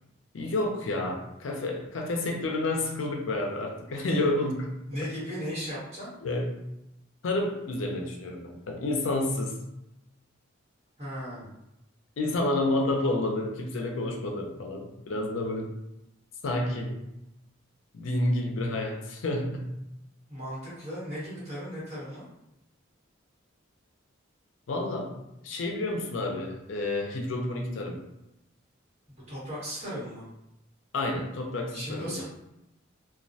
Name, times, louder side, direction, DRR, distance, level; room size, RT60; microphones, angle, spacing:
voice 1, 0.3-4.7 5.0-5.1 6.2-6.6 7.2-9.6 12.2-15.7 16.4-17.0 17.9-19.8 24.7-25.2 25.4-28.0 30.9-32.2, left 2 dB, 70° left, 2 dB, 0.5 m, -30 dB
voice 2, 4.9-6.1 11.0-11.5 20.3-22.3 29.1-30.3 31.7-32.2, equal, 35° right, -10 dB, 1.2 m, -36 dB
2.2 x 2.1 x 2.6 m, 0.87 s
head